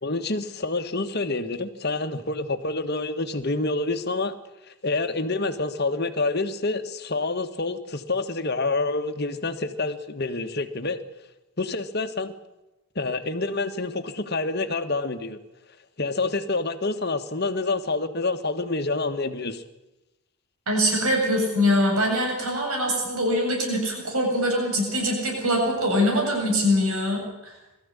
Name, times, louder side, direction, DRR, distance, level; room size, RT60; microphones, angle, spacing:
voice 1, 0.0-4.3 4.7-11.0 11.6-12.3 12.9-15.4 16.0-19.6, left 3 dB, 50° left, 8 dB, 1.6 m, -27 dB
voice 2, 20.7-27.5, equal, 85° right, 0 dB, 7.9 m, -23 dB
22.0 x 14.5 x 10.0 m, 0.99 s
head